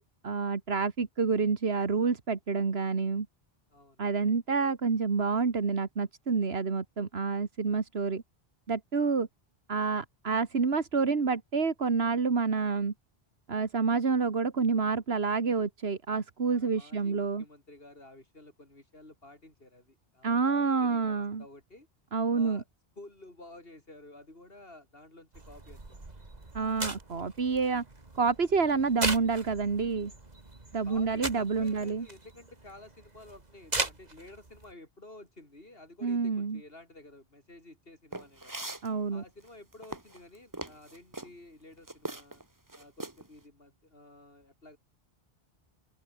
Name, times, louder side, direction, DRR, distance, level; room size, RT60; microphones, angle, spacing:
voice 1, 0.0-3.3 4.0-8.2 8.7-9.3 9.7-12.9 13.5-17.4 20.2-21.4 22.1-22.6 26.5-27.8 28.2-30.1 30.7-32.0 36.0-36.6 38.8-39.2, right 5 dB, 85° right, 2.0 m, -28 dB
voice 2, 3.7-4.0 16.5-21.9 22.3-22.6 23.0-26.0 30.9-38.7 39.1-42.4 42.7-44.8, left 2 dB, 70° left, 5.8 m, -52 dB
sound 1, 25.3-34.7, right 2 dB, 40° right, 2.6 m, -39 dB
sound 2, 38.1-38.9 39.5-41.3 41.9-42.4 42.7-43.3, right 2 dB, 20° right, 1.3 m, -40 dB
open air
omnidirectional pair, 1.0 m